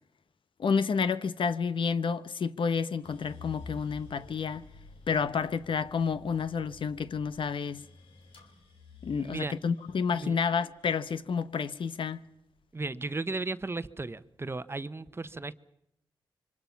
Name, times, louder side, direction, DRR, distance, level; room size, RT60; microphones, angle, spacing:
voice 1, 0.6-4.6 5.1-7.9 9.0-12.2, left 6 dB, 70° left, 0.9 m, -30 dB
sound 1, 3.0-13.2 13.7-14.5, left 3 dB, 85° left, 3.3 m, -51 dB
voice 2, 9.1-9.5 10.1-10.4 12.7-15.5, right 3 dB, 30° right, 0.9 m, -35 dB
27.0 x 24.0 x 5.8 m
cardioid pair, 65°, 9 cm